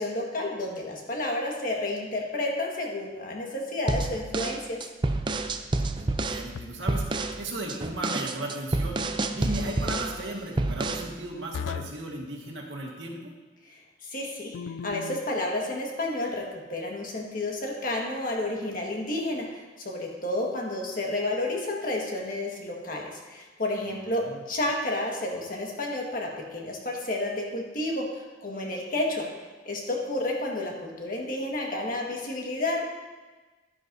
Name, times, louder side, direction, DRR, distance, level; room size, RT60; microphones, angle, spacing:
voice 1, 0.0-4.9 13.7-14.6 14.8-29.3 29.6-32.8, left 1 dB, 50° left, -1 dB, 1.7 m, -31 dB
sound 1, 3.9-6.5 6.9-7.4 7.7-10.2 10.6-11.1, right 2 dB, 25° right, 0.4 m, -28 dB
voice 2, 5.9-9.0 9.3-13.3 23.9-24.4, right 1 dB, 85° right, -1 dB, 1.8 m, -36 dB
sound 2, 6.5-7.0 9.5-10.0 11.5-12.1 14.5-15.3, left 6 dB, 90° left, 0.3 m, -37 dB
12.0 x 10.0 x 2.7 m, 1.3 s
head